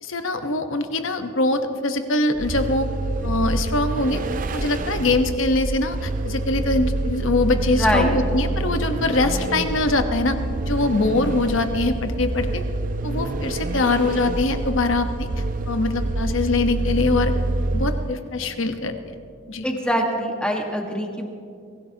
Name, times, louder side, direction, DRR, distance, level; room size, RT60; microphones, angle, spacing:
voice 1, 0.0-2.9 3.2-4.2 4.5-10.4 10.7-12.6 13.0-15.3 15.7-17.3 17.7-18.9 19.5-19.6, left 2 dB, 65° left, 7 dB, 1.0 m, -23 dB
Vehicle, 2.3-18.3, right 2 dB, 40° right, 0.5 m, -26 dB
voice 2, 7.7-8.2 19.6-21.2, equal, 5° left, 1 dB, 1.4 m, -23 dB
24.0 x 15.5 x 2.9 m, 2.5 s
head